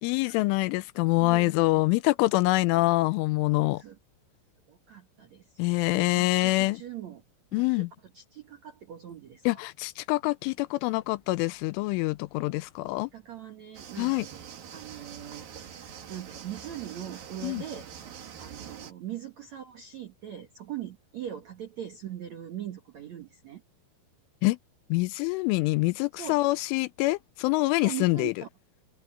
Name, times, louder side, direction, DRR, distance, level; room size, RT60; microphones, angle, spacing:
voice 1, 0.0-3.8 5.6-6.8 7.5-7.9 9.5-13.1 14.0-14.3 17.4-17.6 24.4-24.6 24.9-28.3, left 21 dB, 85° left, 3.0 m, -25 dB
voice 2, 1.1-1.9 3.8-4.0 4.7-7.2 7.6-7.8 8.1-9.4 12.9-17.9 18.4-23.6 26.2-26.4 27.8-28.5, right 11 dB, 90° right, 1.5 m, -41 dB
sound 1, 13.7-18.9, right 8 dB, 55° right, 3.4 m, -44 dB
open air
omnidirectional pair, 5.8 m